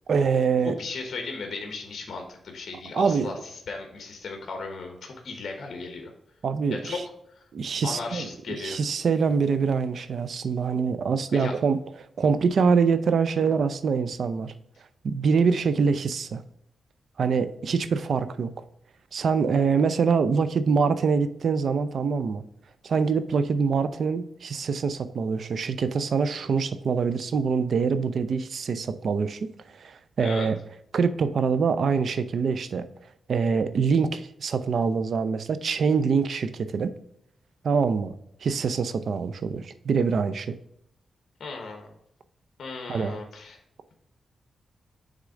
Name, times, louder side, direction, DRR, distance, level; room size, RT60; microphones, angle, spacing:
voice 1, 0.1-0.8 2.9-3.3 6.4-7.0 7.5-11.8 12.2-14.5 15.0-16.4 17.2-18.5 19.1-22.4 22.8-29.5 29.8-30.6 30.9-32.9 33.3-36.9 37.6-38.1 38.4-40.6 42.9-43.2, right 5 dB, 70° right, 12 dB, 0.5 m, -24 dB
voice 2, 0.6-6.1 6.7-7.0 7.8-8.8 11.3-11.5 30.2-30.5 41.4-41.9 42.6-43.6, left 4 dB, 65° left, 3 dB, 1.2 m, -36 dB
6.5 x 3.7 x 4.9 m, 0.75 s
cardioid pair, 80°, 0 cm